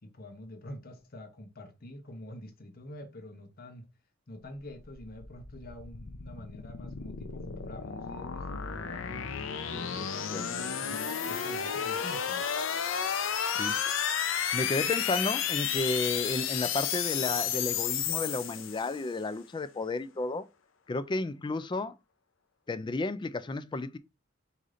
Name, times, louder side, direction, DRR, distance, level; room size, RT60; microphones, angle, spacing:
voice 1, 0.0-3.9 4.3-9.3 9.7-10.7 11.2-12.4, left 1 dB, 50° left, 0.9 m, -47 dB
sound 1, 4.8-19.1, left 8 dB, 75° left, 0.6 m, -32 dB
voice 2, 9.7-10.5 10.9-11.0 13.5-13.9 14.5-20.5 20.9-22.0 22.7-24.0, left 3 dB, 25° left, 0.4 m, -33 dB
4.9 x 2.7 x 3.8 m
head